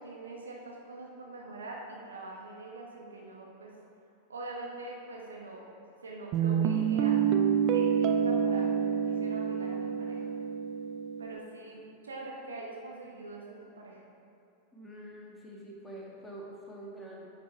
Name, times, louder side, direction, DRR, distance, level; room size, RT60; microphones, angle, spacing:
voice 1, 0.0-3.7 4.3-5.7 6.0-7.2 7.7-10.4 11.2-14.0, right 2 dB, 70° right, -2 dB, 1.4 m, -43 dB
Guitar, 6.3-11.4, right 7 dB, 35° right, 0.5 m, -28 dB
voice 2, 14.7-17.3, right 1 dB, 5° left, -4 dB, 1.9 m, -46 dB
9.8 x 6.0 x 4.8 m, 2.8 s
figure-of-eight pair, 90°, 0 cm